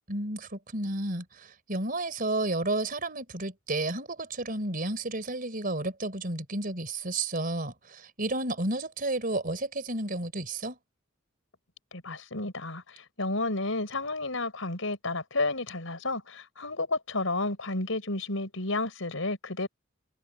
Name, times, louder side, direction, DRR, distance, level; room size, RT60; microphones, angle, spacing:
voice 1, 0.1-10.8, right 2 dB, 45° right, 4.5 m, -32 dB
voice 2, 11.9-19.7, left 2 dB, 80° left, 4.7 m, -31 dB
head